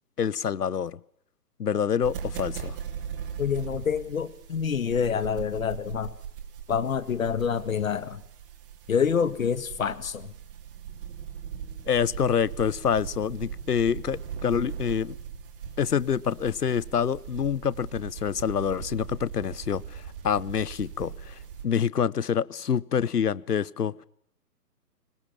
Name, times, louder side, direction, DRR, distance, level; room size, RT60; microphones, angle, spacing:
voice 1, 0.2-1.0 1.6-2.8 11.9-15.1 15.8-21.4 21.6-24.1, left 7 dB, 70° left, 0.9 m, -27 dB
sound 1, 2.0-21.6, right 8 dB, 35° right, 3.1 m, -40 dB
voice 2, 3.4-6.1 6.7-8.2 8.9-10.3, left 7 dB, 55° left, 1.9 m, -27 dB
24.0 x 20.0 x 7.1 m
figure-of-eight pair, 135°, 49 cm